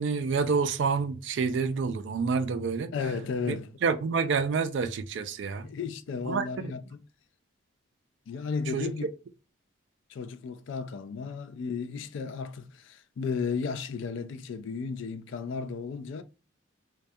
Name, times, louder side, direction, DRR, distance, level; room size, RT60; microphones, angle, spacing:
voice 1, 0.0-2.9 3.5-3.6 3.8-5.7 6.3-6.5 8.7-8.9, right 5 dB, 60° right, 0.3 m, -28 dB
voice 2, 2.9-3.7 5.6-7.0 8.3-9.0 10.1-16.2, left 5 dB, 65° left, 0.3 m, -34 dB
2.2 x 2.2 x 2.6 m
head